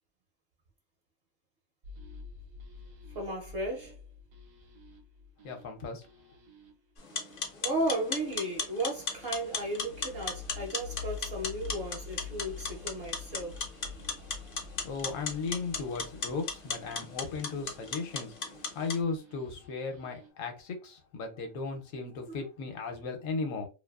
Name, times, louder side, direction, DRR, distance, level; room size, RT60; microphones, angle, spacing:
sound 1, 1.8-20.3, left 6 dB, 75° right, 1.0 m, -48 dB
voice 1, 3.1-4.0 7.5-13.6 22.3-22.5, right 1 dB, 60° right, 0.7 m, -35 dB
voice 2, 5.4-6.1 14.8-18.3 18.7-23.7, left 4 dB, 75° left, 1.0 m, -36 dB
sound 2, 7.0-19.0, left 4 dB, 55° left, 0.6 m, -37 dB
2.5 x 2.5 x 2.3 m
omnidirectional pair, 1.5 m